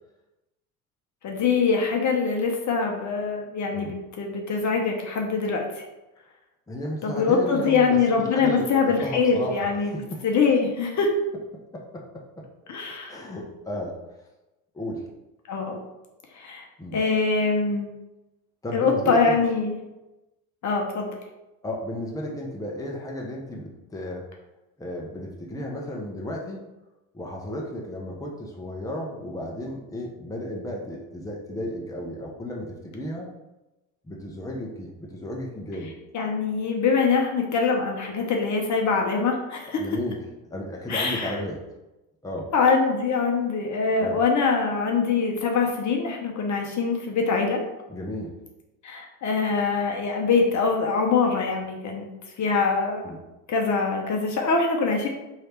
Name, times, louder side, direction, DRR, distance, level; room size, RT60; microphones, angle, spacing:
voice 1, 1.2-5.8 7.0-9.9 10.2-11.1 12.7-13.2 15.5-15.8 16.3-16.7 16.9-17.9 18.7-19.8 20.6-21.1 36.1-39.9 40.9-41.4 42.5-47.6 48.8-52.1 52.4-53.0 53.5-55.1, left 4 dB, 40° left, 1 dB, 0.9 m, -23 dB
voice 2, 6.7-10.4 11.7-12.5 13.1-14.0 14.7-15.0 16.8-17.0 18.6-19.4 21.6-24.3 24.8-26.6 27.1-33.3 34.0-35.9 39.8-40.2 40.5-41.6 42.2-42.5 43.9-44.2 47.9-48.3 53.0-53.2, left 1 dB, 10° left, -1 dB, 0.8 m, -34 dB
3.2 x 2.9 x 4.5 m, 0.99 s
hypercardioid pair, 70°, 42 cm